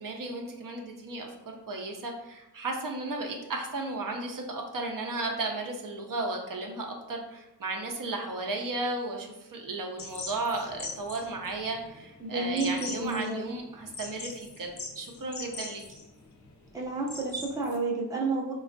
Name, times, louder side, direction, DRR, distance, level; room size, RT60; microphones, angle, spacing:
voice 1, 0.0-14.7 15.0-15.8, right 2 dB, 55° right, 1 dB, 0.5 m, -34 dB
sound 1, 10.0-17.8, left 4 dB, 45° left, 0.5 m, -42 dB
voice 2, 12.2-13.4 16.7-18.5, right 3 dB, 10° right, -3 dB, 0.5 m, -30 dB
4.2 x 2.2 x 2.5 m, 0.95 s
wide cardioid pair, 110°, 40 cm